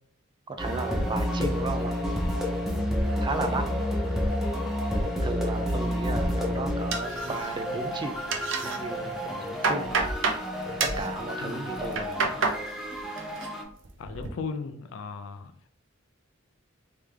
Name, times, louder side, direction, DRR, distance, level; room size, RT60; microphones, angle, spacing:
voice 1, 0.5-1.9 3.2-3.7 5.2-8.2 8.6-9.9 11.0-12.4, right 2 dB, 20° right, 0.4 m, -34 dB
sound 1, 0.6-13.6, equal, ahead, 0.7 m, -30 dB
sound 2, 6.9-7.7 8.0-8.8 9.2-10.4 10.8-11.1 11.7-12.6 13.0-13.5 13.8-14.3, right 4 dB, 65° right, 0.6 m, -29 dB
voice 2, 14.0-15.6, left 4 dB, 65° left, 0.3 m, -36 dB
3.4 x 3.3 x 3.3 m
head